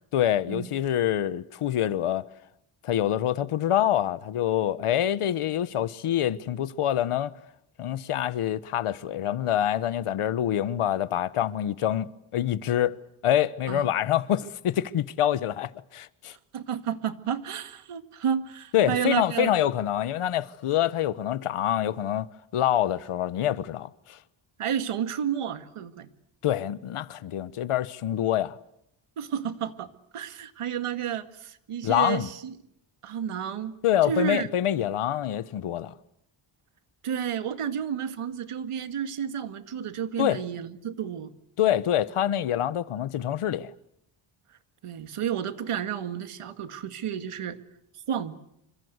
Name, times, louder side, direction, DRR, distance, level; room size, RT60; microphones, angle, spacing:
voice 1, 0.1-2.2 2.8-7.3 7.8-13.0 13.2-16.4 18.7-22.3 22.5-24.2 26.4-28.6 31.8-32.3 33.8-35.9 40.2-40.4 41.6-43.7, left 11 dB, 80° left, 1.2 m, -26 dB
voice 2, 16.3-19.5 24.6-26.1 29.2-32.5 33.0-33.7 34.0-34.5 37.0-41.3 44.8-47.6 48.1-48.4, right 8 dB, 85° right, 2.1 m, -31 dB
27.5 x 25.5 x 8.1 m
wide cardioid pair, 150°, 50 cm